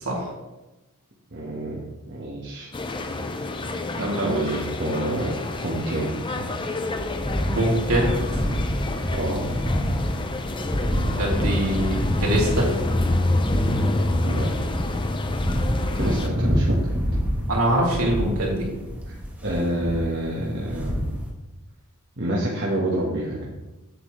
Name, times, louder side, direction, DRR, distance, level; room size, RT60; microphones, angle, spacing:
voice 1, 1.3-2.7 4.2-5.3 5.6-6.4 9.1-9.4 14.2-14.5 15.9-16.9 19.1-19.2 19.4-21.0 22.2-23.5, right 1 dB, 50° right, -4 dB, 1.3 m, -27 dB
sound 1, 2.7-16.3, left 2 dB, 20° left, 0.5 m, -28 dB
voice 2, 3.9-4.5 7.5-8.4 10.7-12.7 16.0-16.1 17.5-18.7, right 1 dB, 70° right, -4 dB, 2.9 m, -24 dB
sound 2, 6.9-21.3, equal, 5° right, 1.3 m, -27 dB
8.6 x 7.9 x 3.2 m, 1.1 s
head